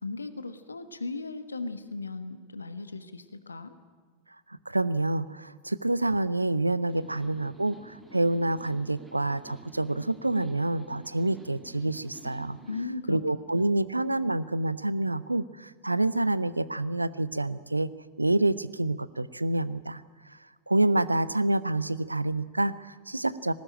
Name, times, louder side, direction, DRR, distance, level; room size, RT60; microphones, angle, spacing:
voice 1, 0.0-3.8 12.7-13.2, left 3 dB, 75° left, 11 dB, 1.3 m, -37 dB
voice 2, 4.5-12.6 13.1-17.9 18.2-20.0 20.3-20.4 20.7-23.5, right 2 dB, 85° right, 18 dB, 0.6 m, -27 dB
sound 1, 6.9-12.9, right 2 dB, 10° right, 2.6 m, -50 dB
20.0 x 18.0 x 8.9 m, 1.5 s
figure-of-eight pair, 90°, 0 cm